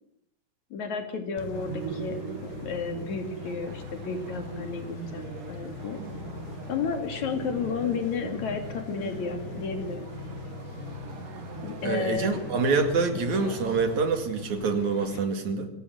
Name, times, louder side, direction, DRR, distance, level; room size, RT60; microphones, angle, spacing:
voice 1, 0.7-6.0 6.7-10.1 11.6-12.4 13.1-13.2, left 5 dB, 65° left, 6 dB, 3.6 m, -32 dB
sound 1, 1.4-15.2, left 8 dB, 80° left, 2.6 m, -41 dB
sound 2, 1.5-14.1, right 8 dB, 85° right, 3.0 m, -41 dB
voice 2, 11.8-15.7, right 4 dB, 65° right, 7 dB, 3.5 m, -26 dB
23.5 x 17.0 x 7.9 m, 0.77 s
omnidirectional pair, 3.6 m